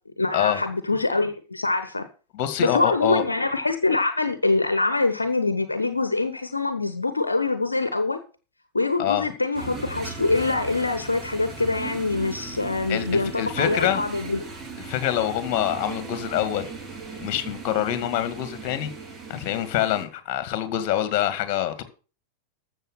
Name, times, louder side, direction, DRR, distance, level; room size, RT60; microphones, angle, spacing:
voice 1, 0.2-2.1 2.6-8.2 8.7-14.5, left 3 dB, 80° left, 1.0 m, -24 dB
voice 2, 2.3-3.2 9.0-9.3 12.9-14.0 14.9-16.7 17.2-18.9 19.3-21.8, left 11 dB, 45° left, 2.1 m, -25 dB
sound 1, 9.5-20.1, right 4 dB, 20° right, 2.6 m, -38 dB
13.5 x 7.1 x 5.7 m
figure-of-eight pair, 90°, 0 cm